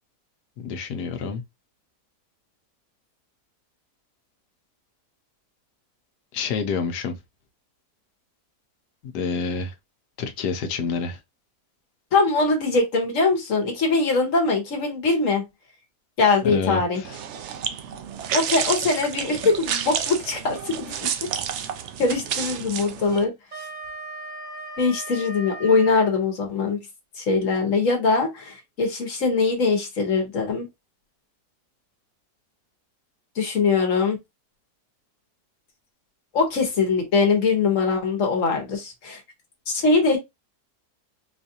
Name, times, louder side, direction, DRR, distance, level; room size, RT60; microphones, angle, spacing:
voice 1, 0.6-1.4 6.3-7.2 9.1-9.7 10.2-11.2 16.4-17.2, left 5 dB, 85° left, 1.3 m, -28 dB
voice 2, 12.1-15.4 16.2-17.0 18.3-20.9 22.0-23.3 24.8-26.8 27.2-30.7 33.4-34.2 36.3-39.2 39.7-40.2, left 4 dB, 55° left, 1.3 m, -22 dB
sound 1, 17.0-23.2, right 8 dB, 75° right, 0.6 m, -30 dB
Wind instrument woodwind instrument, 23.1-26.1, right 2 dB, 35° right, 0.9 m, -38 dB
4.3 x 2.4 x 2.7 m
omnidirectional pair, 1.7 m